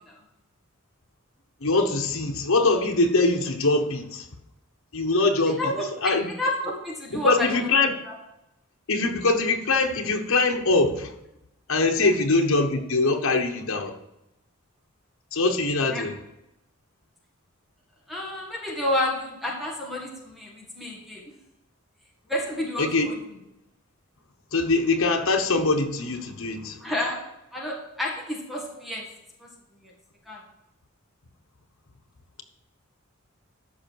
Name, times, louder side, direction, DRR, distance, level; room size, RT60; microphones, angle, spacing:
voice 1, 1.6-4.3 4.9-5.7 6.0-6.3 7.2-8.0 8.9-11.1 11.7-14.0 15.3-16.1 22.8-23.1 24.5-26.8, left 3 dB, 85° left, 2 dB, 1.1 m, -23 dB
voice 2, 5.5-7.7 8.1-8.2 12.0-12.1 15.9-16.1 18.1-21.3 22.3-23.1 26.8-27.2 27.5-29.1 29.4-29.5 29.8-29.9 30.3-30.4, left 1 dB, ahead, -1 dB, 1.7 m, -30 dB
13.5 x 5.7 x 4.6 m, 0.87 s
head